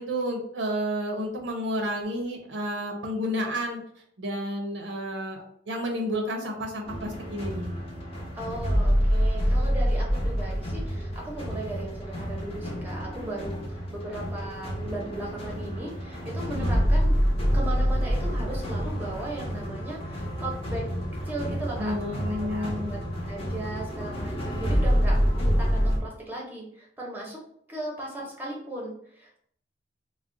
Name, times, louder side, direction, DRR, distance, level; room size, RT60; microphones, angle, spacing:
voice 1, 0.0-3.8 4.2-7.7 16.5-16.8 21.8-22.9, equal, 80° right, 2 dB, 0.6 m, -31 dB
sound 1, 6.8-26.0, equal, 35° left, 0.7 m, -27 dB
voice 2, 8.3-17.2 17.5-20.9 21.2-22.0 22.3-23.0 23.2-27.4 27.7-29.4, right 1 dB, 10° right, -3 dB, 0.7 m, -37 dB
2.3 x 2.1 x 3.7 m, 0.66 s
head